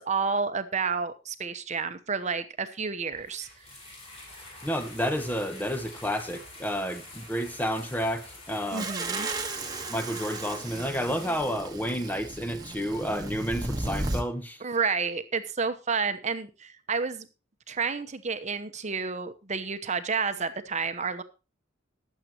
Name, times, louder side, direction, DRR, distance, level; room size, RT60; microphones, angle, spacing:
voice 1, 0.0-3.5 8.7-9.3 14.6-17.3 17.7-21.2, right 5 dB, 35° right, 1.0 m, -30 dB
sound 1, 3.1-11.5, left 2 dB, 35° left, 6.6 m, -47 dB
voice 2, 4.6-8.8 9.9-14.6, equal, 10° left, 1.1 m, -30 dB
sound 2, 8.7-14.2, right 2 dB, 20° right, 1.3 m, -34 dB
21.5 x 7.5 x 3.0 m
head